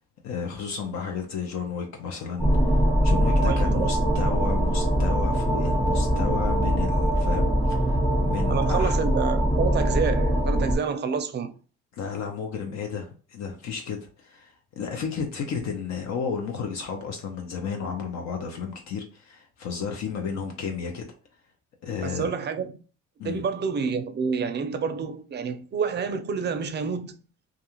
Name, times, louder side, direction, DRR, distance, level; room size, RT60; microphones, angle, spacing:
voice 1, 0.2-9.0 11.9-21.1 21.8-22.3 23.2-23.4, left 6 dB, 65° left, 0.6 m, -33 dB
sound 1, 2.4-10.8, equal, 15° left, 1.0 m, -22 dB
voice 2, 3.4-3.9 8.5-11.5 22.0-22.7 23.2-27.2, right 6 dB, 35° right, 0.4 m, -28 dB
2.4 x 2.3 x 2.9 m
cardioid pair, 90°, 30 cm